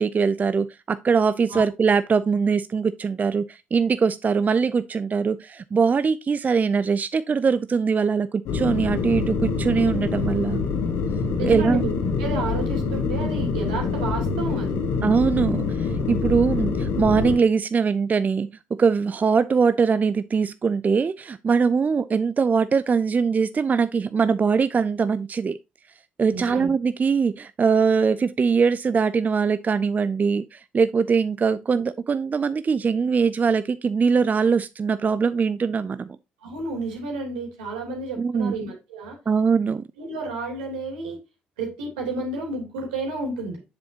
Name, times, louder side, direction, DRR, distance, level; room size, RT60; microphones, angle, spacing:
voice 1, 0.0-10.6 11.4-11.8 15.0-18.5 18.8-25.6 26.2-36.2 38.2-38.5 39.3-39.8, right 5 dB, 35° right, 0.4 m, -22 dB
sound 1, 8.5-17.4, left 4 dB, 65° left, 1.6 m, -25 dB
voice 2, 11.4-11.9 12.2-14.7 26.3-26.7 36.4-39.2 40.0-41.2 41.6-43.6, right 3 dB, 80° right, 2.8 m, -31 dB
7.6 x 7.1 x 2.8 m
hypercardioid pair, 50°, 5 cm